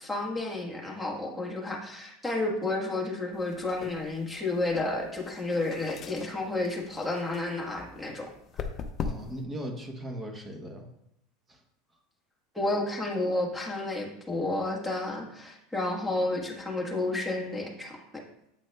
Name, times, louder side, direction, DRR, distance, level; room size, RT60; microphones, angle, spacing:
voice 1, 0.0-8.7 12.5-18.2, left 2 dB, ahead, -4 dB, 1.4 m, -31 dB
sound 1, 3.3-9.5, left 5 dB, 35° left, 0.6 m, -40 dB
voice 2, 9.0-10.9 11.5-11.6, right 1 dB, 15° right, 2 dB, 1.1 m, -38 dB
8.7 x 6.1 x 2.3 m, 0.81 s
supercardioid pair, 140°, 0 cm